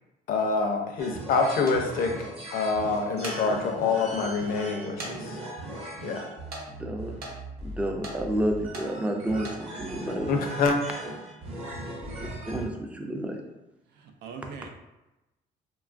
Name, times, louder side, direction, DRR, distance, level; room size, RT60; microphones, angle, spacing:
voice 1, 0.3-2.1 2.5-5.4 6.0-6.3 10.3-10.8, left 4 dB, 60° left, 3 dB, 0.5 m, -26 dB
sound 1, 1.0-12.7, right 1 dB, 35° right, 0.8 m, -39 dB
sound 2, 1.7-1.8 3.0-3.4 4.0-4.1 5.0-5.1 5.4-5.5 6.5-6.6 7.2-7.3 8.0-8.2 8.7-8.9 9.3-9.6, right 2 dB, 60° right, 0.9 m, -37 dB
voice 2, 6.8-7.2 7.6-10.3 12.5-13.4, right 1 dB, 10° right, 2 dB, 0.3 m, -30 dB
voice 3, 13.9-14.7, right 5 dB, 85° right, 4 dB, 0.4 m, -42 dB
2.9 x 2.3 x 2.4 m, 0.99 s
cardioid pair, 110°, 17 cm